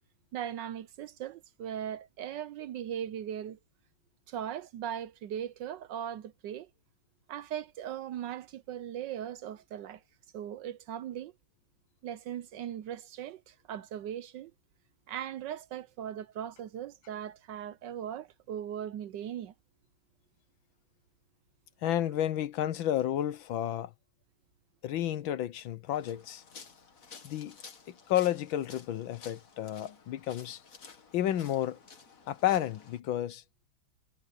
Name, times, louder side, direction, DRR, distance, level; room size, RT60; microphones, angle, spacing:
voice 1, 0.3-3.6 4.3-6.7 7.3-10.0 10.3-11.3 12.0-14.5 15.1-19.5, right 10 dB, 70° right, 1.2 m, -39 dB
voice 2, 21.8-23.9 24.8-26.4 27.2-27.6 27.9-30.6 31.1-31.8 32.3-33.4, left 12 dB, 75° left, 1.6 m, -31 dB
sound 1, 25.9-33.0, left 5 dB, 45° left, 1.9 m, -53 dB
omnidirectional pair, 2.2 m